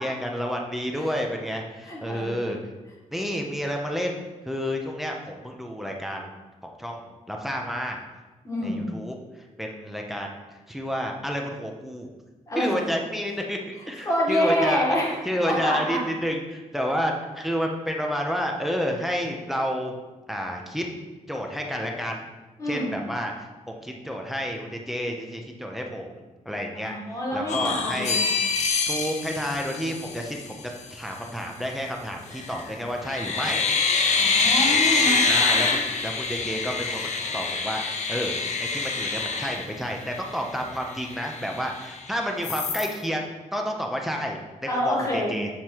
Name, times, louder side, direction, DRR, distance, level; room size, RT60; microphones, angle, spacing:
voice 1, 0.0-2.6 3.1-6.3 6.8-8.0 8.6-9.1 9.6-10.4 10.7-12.1 12.6-15.0 15.3-19.9 20.3-20.8 21.3-22.2 22.7-23.3 23.7-26.2 26.5-26.9 27.3-28.2 28.9-30.6 30.9-33.6 35.2-38.3 38.6-45.5, equal, ahead, 1 dB, 0.6 m, -30 dB
voice 2, 1.9-2.6 8.4-8.9 12.5-12.8 14.1-15.2 15.5-16.0 22.6-23.0 26.7-28.3 34.2-35.2 44.7-45.3, equal, 25° left, -3 dB, 1.7 m, -27 dB
sound 1, 27.5-30.5 32.3-32.7 33.0-40.3 40.7-40.8 41.1-42.0 42.4-42.9, left 4 dB, 60° left, 0.7 m, -25 dB
7.6 x 4.9 x 4.5 m, 1.2 s
wide cardioid pair, 175°, 13 cm